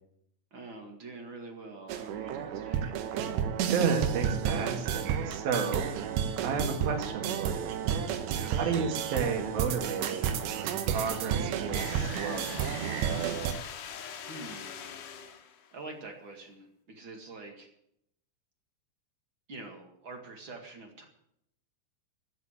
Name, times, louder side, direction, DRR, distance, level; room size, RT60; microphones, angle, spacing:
voice 1, 0.5-2.9 8.3-8.8 14.2-14.9 15.7-17.7 19.5-21.0, right 3 dB, 45° right, 3 dB, 1.6 m, -45 dB
sound 1, 1.9-13.5, right 8 dB, 80° right, 3.3 m, -31 dB
voice 2, 3.7-5.9 6.4-7.7 8.6-12.5, right 5 dB, 60° right, 3 dB, 3.7 m, -32 dB
sound 2, 11.7-15.8, left 8 dB, 65° left, 2.2 m, -42 dB
13.0 x 8.3 x 9.8 m, 0.75 s
omnidirectional pair, 5.0 m